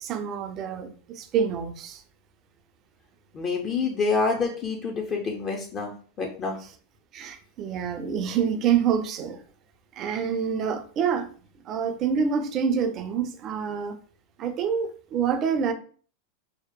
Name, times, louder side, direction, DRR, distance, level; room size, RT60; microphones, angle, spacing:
voice 1, 0.0-2.0 3.8-3.9 7.1-9.4 10.0-11.3 11.7-14.0 14.4-15.7, right 7 dB, 40° right, 0.4 m, -27 dB
voice 2, 3.3-5.9 6.2-6.6, left 4 dB, 35° left, 0.5 m, -27 dB
2.7 x 2.0 x 2.2 m
hypercardioid pair, 100°, 0 cm